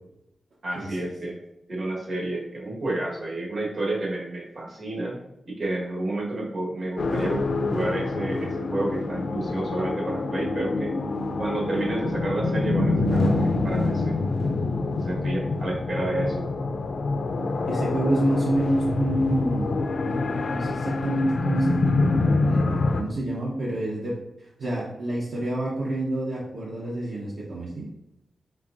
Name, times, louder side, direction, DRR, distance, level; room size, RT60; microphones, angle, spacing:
voice 1, 0.6-1.4 1.7-5.2 5.5-10.9 11.4-14.2 14.9-16.4, right 2 dB, 60° right, -2 dB, 1.3 m, -30 dB
sound 1, 7.0-23.0, left 3 dB, 65° left, 0.4 m, -26 dB
voice 2, 17.7-19.8 20.0-22.1 22.4-24.2 24.6-27.9, right 1 dB, 80° right, -6 dB, 0.8 m, -27 dB
4.5 x 4.3 x 2.5 m, 0.87 s
wide cardioid pair, 90°, 0 cm